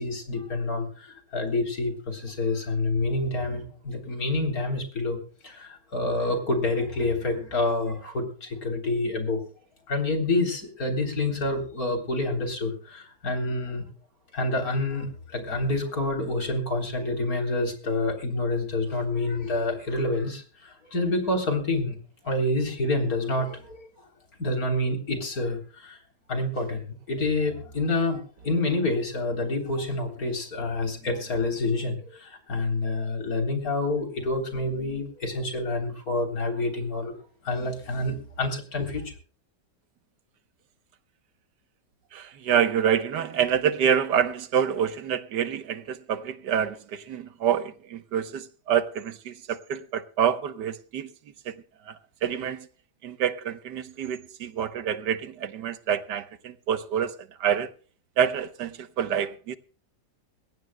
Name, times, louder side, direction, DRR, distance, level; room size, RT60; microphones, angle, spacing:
voice 1, 0.0-5.2 5.4-9.4 9.9-13.9 14.3-22.0 22.2-23.9 24.4-26.0 26.3-37.1 37.4-39.1, left 2 dB, 60° left, 4.0 m, -28 dB
voice 2, 42.1-51.1 51.5-51.6 51.9-52.0 52.2-52.7 53.0-57.1 57.4-57.7 58.2-59.6, right 8 dB, 80° right, 1.6 m, -27 dB
22.0 x 17.5 x 2.2 m
omnidirectional pair, 1.8 m